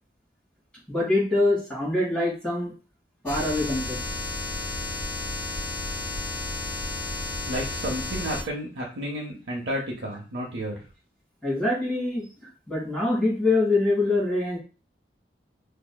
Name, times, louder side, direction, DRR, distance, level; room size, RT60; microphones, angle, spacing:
voice 1, 0.9-2.7 3.2-4.0 11.4-12.3 12.7-14.6, left 2 dB, 5° left, -7 dB, 1.7 m, -24 dB
sound 1, 3.3-8.4, left 2 dB, 90° left, 1.1 m, -32 dB
voice 2, 7.5-10.8, equal, 85° right, -2 dB, 0.7 m, -31 dB
4.9 x 2.7 x 2.2 m, 0.36 s
head